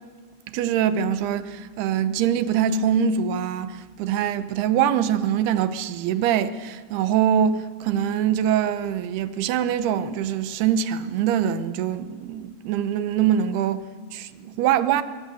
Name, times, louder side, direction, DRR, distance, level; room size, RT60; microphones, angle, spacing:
voice 1, 0.5-15.0, right 9 dB, 80° right, 3.0 m, -23 dB
25.5 x 22.0 x 7.8 m
omnidirectional pair, 4.6 m